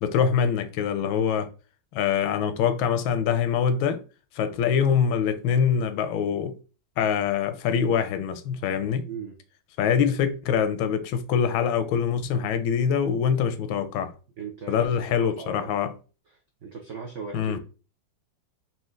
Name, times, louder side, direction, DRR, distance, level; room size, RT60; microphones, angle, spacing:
voice 1, 0.0-1.5 1.9-4.0 4.3-6.5 7.0-9.1 9.8-14.1 14.7-15.9 17.3-17.6, left 7 dB, 85° left, 1.4 m, -24 dB
voice 2, 9.0-9.4 14.4-15.8 16.3-17.6, right 5 dB, 75° right, 0.6 m, -38 dB
4.4 x 2.7 x 3.6 m
omnidirectional pair, 2.1 m